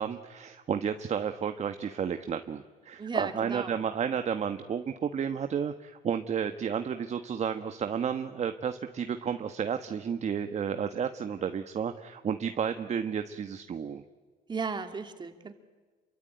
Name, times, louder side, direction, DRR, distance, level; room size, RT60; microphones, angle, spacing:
voice 1, 0.0-14.0, right 7 dB, 40° right, 8 dB, 1.3 m, -32 dB
voice 2, 3.0-3.8 14.5-15.5, right 5 dB, 25° right, 7 dB, 2.7 m, -35 dB
28.0 x 23.5 x 9.0 m, 1.4 s
cardioid pair, 110°, 17 cm